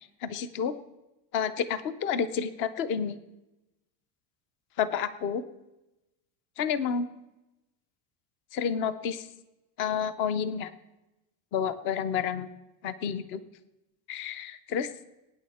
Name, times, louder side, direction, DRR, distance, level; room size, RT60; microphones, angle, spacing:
voice 1, 0.2-0.7 1.3-3.2 4.8-5.4 6.6-7.1 8.5-9.3 9.8-10.7 11.5-12.5 12.8-13.4 14.1-14.9, left 7 dB, 30° left, 15 dB, 0.4 m, -30 dB
20.5 x 9.3 x 4.1 m, 0.98 s
cardioid pair, 175°, 47 cm